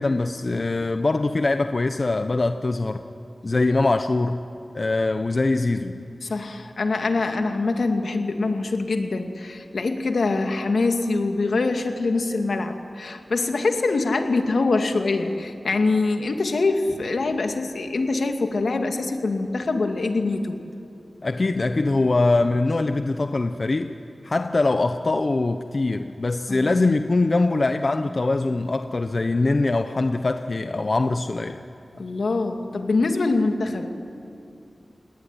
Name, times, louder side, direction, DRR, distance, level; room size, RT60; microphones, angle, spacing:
voice 1, 0.0-3.0 3.4-4.4 4.7-6.0 21.2-23.9 24.2-31.6, left 2 dB, 50° left, 8 dB, 1.0 m, -22 dB
voice 2, 6.2-20.6 26.5-26.7 31.9-33.9, left 3 dB, 85° left, 5 dB, 2.3 m, -24 dB
29.5 x 19.0 x 10.0 m, 2.6 s
wide cardioid pair, 65°, 0 cm